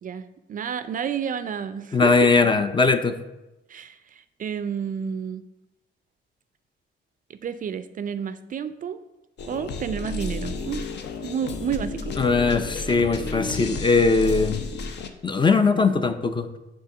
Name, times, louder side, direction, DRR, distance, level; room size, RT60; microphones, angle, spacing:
voice 1, 0.0-2.3 3.7-4.0 4.4-5.4 7.4-9.0 9.4-10.9 11.2-12.1, right 7 dB, 45° right, 13 dB, 0.4 m, -30 dB
voice 2, 1.9-3.2 12.2-14.6 15.2-16.6, left 4 dB, 25° left, 9 dB, 0.5 m, -20 dB
sound 1, 9.4-15.1, left 3 dB, 60° left, 0.7 m, -32 dB
6.7 x 3.7 x 5.9 m, 1.0 s
cardioid pair, 90°, 20 cm